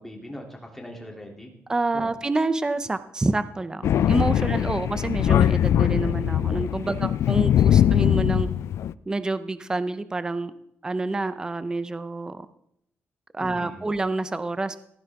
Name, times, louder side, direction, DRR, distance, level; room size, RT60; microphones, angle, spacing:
voice 1, 0.0-1.5 1.9-2.1 4.6-4.8 6.8-7.1 13.4-13.9, left 1 dB, 5° left, 0 dB, 2.8 m, -41 dB
voice 2, 1.7-8.5 9.1-10.5 10.8-12.5 13.3-14.8, right 2 dB, 15° right, 12 dB, 0.6 m, -28 dB
Thunder, 3.8-8.9, left 10 dB, 65° left, 0.4 m, -21 dB
15.0 x 15.0 x 3.6 m, 0.77 s
cardioid pair, 150°, 5 cm